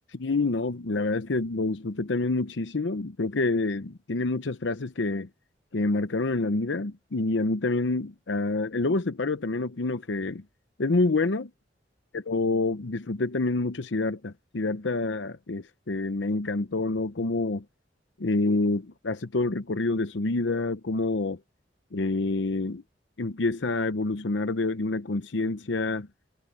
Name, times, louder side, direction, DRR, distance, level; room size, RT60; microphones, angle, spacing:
voice 1, 0.1-5.3 5.7-10.4 10.8-11.5 12.1-17.6 18.2-21.4 21.9-22.8 23.2-26.1, left 3 dB, 80° left, 0.8 m, -27 dB
head